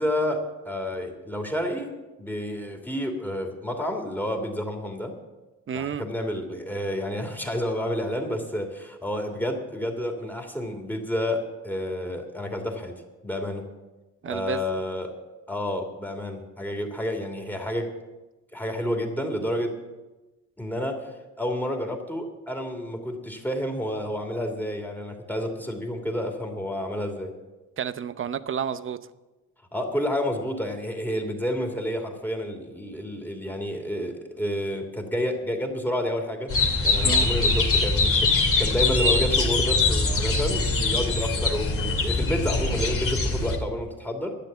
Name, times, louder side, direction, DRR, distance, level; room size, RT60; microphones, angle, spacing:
voice 1, 0.0-1.9 2.2-5.2 5.7-13.6 14.3-15.1 15.5-17.9 18.5-19.8 20.6-21.1 21.4-27.3 29.7-44.3, left 1 dB, 5° left, 2.8 m, -30 dB
voice 2, 5.7-6.0 14.2-14.6 27.8-29.0 37.0-37.3, right 7 dB, 45° right, 0.8 m, -30 dB
sound 1, 36.5-43.6, left 3 dB, 45° left, 2.7 m, -23 dB
12.0 x 9.4 x 8.1 m
cardioid pair, 90°, 30 cm